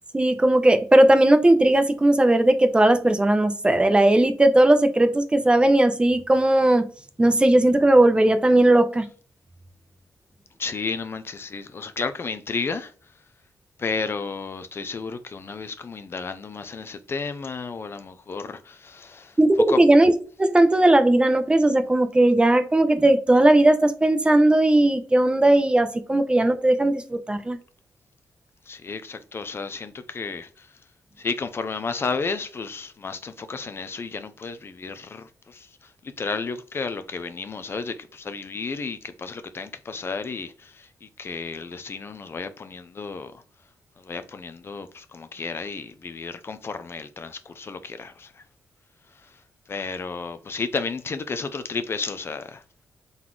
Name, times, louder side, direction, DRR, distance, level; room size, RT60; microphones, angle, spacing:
voice 1, 0.1-6.9 7.2-9.1 19.4-20.1 20.4-27.6, right 1 dB, 15° right, 0.6 m, -18 dB
voice 2, 10.6-12.9 13.8-19.4 19.7-19.8 28.7-30.7 31.2-43.4 44.0-48.4 49.1-49.4 49.7-52.6, left 4 dB, 40° left, 0.5 m, -32 dB
3.9 x 3.0 x 3.7 m
cardioid pair, 95°, 6 cm